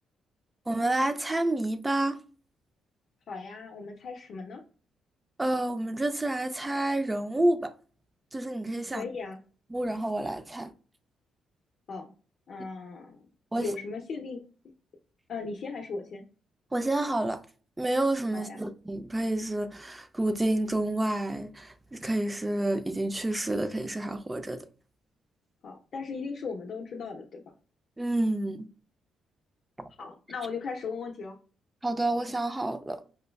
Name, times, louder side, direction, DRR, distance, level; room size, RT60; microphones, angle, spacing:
voice 1, 0.7-2.2 5.4-7.7 8.3-9.0 9.7-10.7 13.5-13.7 16.7-17.4 17.8-24.6 28.0-28.7 29.8-29.9 31.8-33.0, right 1 dB, 15° right, 0.3 m, -29 dB
voice 2, 3.3-4.6 8.9-9.4 11.9-12.1 12.5-13.3 13.6-14.5 15.3-16.2 18.3-18.6 25.6-27.4 30.0-31.4, left 4 dB, 50° left, 0.5 m, -37 dB
5.0 x 2.2 x 2.2 m
cardioid pair, 125°, 0 cm